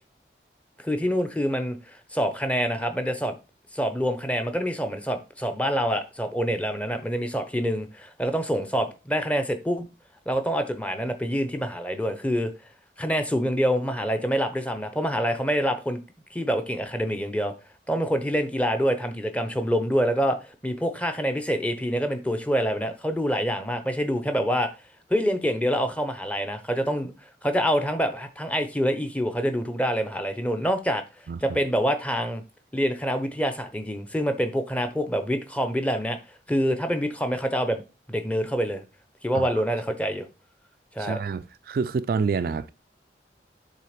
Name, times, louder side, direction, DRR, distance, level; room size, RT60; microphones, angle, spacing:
voice 1, 0.8-3.3 3.7-9.9 10.3-12.5 13.0-16.0 16.3-17.5 17.9-24.7 25.1-27.1 27.4-31.0 31.4-32.4 32.7-36.2 36.5-37.8 38.1-38.8 39.2-40.3 41.0-41.2, equal, 5° left, 0.7 m, -26 dB
voice 2, 41.0-42.7, right 5 dB, 55° right, 0.3 m, -28 dB
7.4 x 3.4 x 5.0 m
head